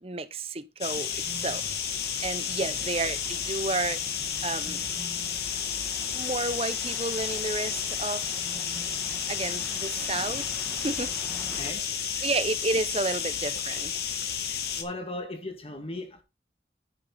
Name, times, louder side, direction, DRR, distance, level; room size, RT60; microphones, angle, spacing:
voice 1, 0.0-4.8 6.1-8.5 9.3-10.5 10.8-11.1 12.2-13.9, right 3 dB, 35° right, 0.9 m, -31 dB
sound 1, 0.8-14.8, left 8 dB, 65° left, 1.8 m, -32 dB
sound 2, 1.2-11.7, equal, ahead, 1.5 m, -45 dB
voice 2, 11.5-11.9 14.8-16.2, left 2 dB, 35° left, 2.1 m, -37 dB
10.5 x 6.6 x 4.0 m
head